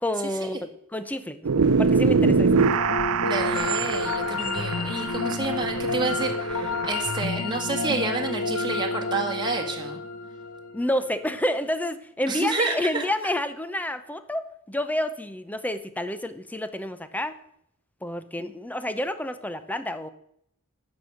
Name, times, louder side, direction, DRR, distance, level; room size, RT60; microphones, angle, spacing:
voice 1, 0.0-1.4 1.8-2.5 10.7-17.3 18.0-20.1, left 1 dB, 5° left, 11 dB, 0.7 m, -29 dB
sound 1, 1.4-7.2, right 5 dB, 85° right, 0.5 m, -24 dB
sound 2, 2.0-11.2, left 3 dB, 85° left, 1.0 m, -30 dB
voice 2, 3.2-10.0 12.3-13.0 18.4-18.5, right 3 dB, 20° right, 0 dB, 1.8 m, -29 dB
12.0 x 5.3 x 7.7 m, 0.71 s
head